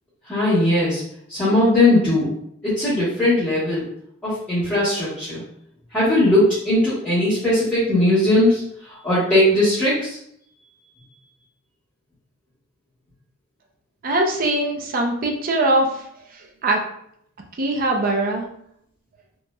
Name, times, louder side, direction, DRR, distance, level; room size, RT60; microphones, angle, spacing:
voice 1, 0.3-1.0 1.3-2.3 2.6-3.9 4.2-5.4 5.9-8.6 8.9-10.2, left 1 dB, 10° left, -15 dB, 1.2 m, -19 dB
voice 2, 14.0-16.0 16.3-16.8 17.6-18.4, right 2 dB, 45° right, 1 dB, 0.5 m, -21 dB
3.0 x 2.9 x 2.2 m, 0.71 s
head